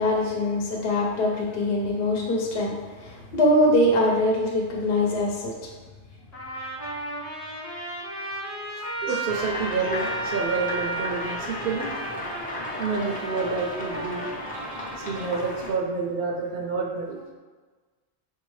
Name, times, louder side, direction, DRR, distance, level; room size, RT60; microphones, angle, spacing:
voice 1, 0.0-5.7 9.1-9.2, left 1 dB, 65° left, -1 dB, 0.9 m, -23 dB
Trumpet, 6.3-15.4, right 2 dB, 40° left, 1.1 m, -34 dB
voice 2, 8.8-11.9 12.8-14.3 14.5-17.2, right 4 dB, 65° right, -2 dB, 0.8 m, -29 dB
sound 1, 9.3-15.7, left 1 dB, 10° left, 0.5 m, -35 dB
6.1 x 2.7 x 3.1 m, 1.3 s
omnidirectional pair, 1.1 m